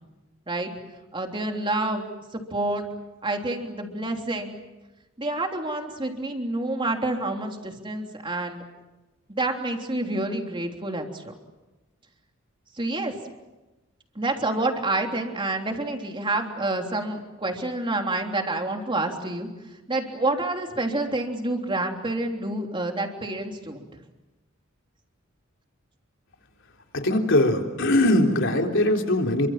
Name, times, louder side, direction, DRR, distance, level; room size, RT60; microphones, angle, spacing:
voice 1, 1.1-2.8 3.2-4.6 5.2-8.6 9.3-11.3 12.8-13.1 14.1-19.5 19.9-23.9, right 2 dB, 25° right, 3 dB, 3.4 m, -28 dB
voice 2, 26.9-29.5, left 1 dB, 65° left, 2 dB, 3.9 m, -21 dB
29.0 x 24.5 x 7.5 m, 1.1 s
head